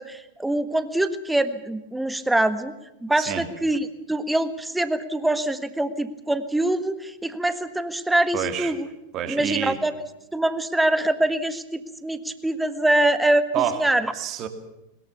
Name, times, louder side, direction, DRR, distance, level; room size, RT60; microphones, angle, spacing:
voice 1, 0.0-2.7 3.0-8.9 9.3-9.9 10.3-14.1, right 1 dB, 5° right, 12 dB, 1.5 m, -24 dB
voice 2, 8.3-8.7 9.1-9.8 13.5-13.8 14.1-14.5, right 10 dB, 35° right, 8 dB, 2.8 m, -27 dB
21.5 x 20.5 x 7.1 m, 0.93 s
figure-of-eight pair, 90°, 0 cm